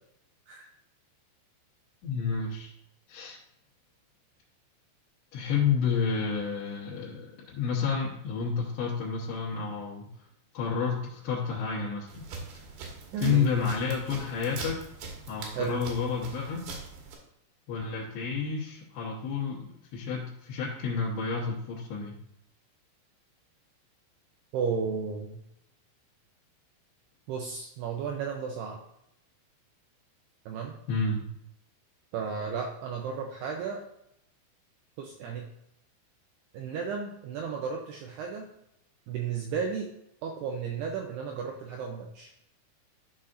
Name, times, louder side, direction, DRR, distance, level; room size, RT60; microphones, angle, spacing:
voice 1, 2.0-2.7 3.1-3.4 5.3-10.1 10.5-12.2 13.2-14.8 15.3-16.6 17.7-22.1 30.9-31.2, left 5 dB, 70° left, -7 dB, 3.2 m, -30 dB
sound 1, 12.1-17.2, right 4 dB, 70° right, 3.4 m, -42 dB
voice 2, 13.1-13.5 15.5-15.8 24.5-25.4 27.3-28.8 30.5-30.7 32.1-33.8 35.0-35.5 36.5-38.5 39.1-39.9 40.2-42.3, right 6 dB, 85° right, 2 dB, 2.3 m, -33 dB
12.0 x 5.7 x 2.5 m, 0.78 s
omnidirectional pair, 5.6 m